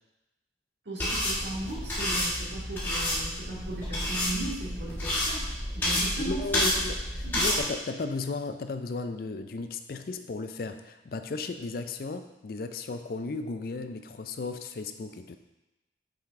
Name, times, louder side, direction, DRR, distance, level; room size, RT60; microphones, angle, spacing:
voice 1, 0.9-6.8 7.2-7.4, right 2 dB, 80° right, -7 dB, 2.1 m, -37 dB
sound 1, 1.0-7.6, left 1 dB, 10° left, 1.4 m, -30 dB
voice 2, 6.2-7.0 7.4-15.4, left 3 dB, 55° left, 9 dB, 0.4 m, -35 dB
5.7 x 4.9 x 3.6 m, 1.0 s
head